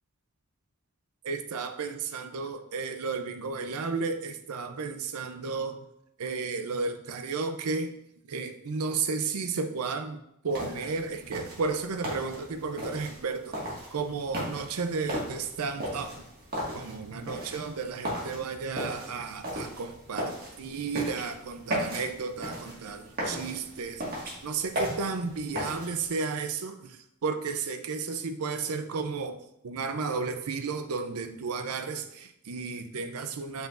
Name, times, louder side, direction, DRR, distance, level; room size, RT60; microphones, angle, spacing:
voice 1, 1.2-5.8 6.2-7.9 8.3-10.2 10.4-13.5 13.9-16.2 16.7-29.4 29.6-33.7, right 4 dB, 80° right, 8 dB, 0.5 m, -33 dB
sound 1, 10.5-26.1, equal, 45° right, 1.8 m, -37 dB
7.8 x 4.9 x 2.5 m, 0.78 s
head